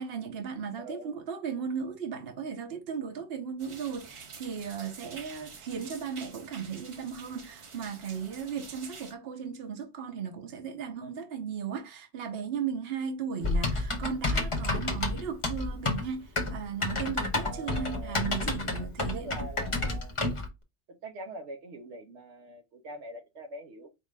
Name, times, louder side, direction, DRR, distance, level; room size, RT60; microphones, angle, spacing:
voice 1, 0.0-19.3, right 7 dB, 65° right, 1.0 m, -36 dB
voice 2, 0.8-1.2 17.4-18.3 19.0-20.1 20.9-23.9, right 1 dB, 90° right, 1.1 m, -43 dB
sound 1, 3.6-9.1, right 5 dB, 40° right, 0.4 m, -48 dB
Typing, 13.4-20.5, left 2 dB, 35° left, 0.7 m, -30 dB
4.6 x 2.5 x 3.3 m
omnidirectional pair, 1.1 m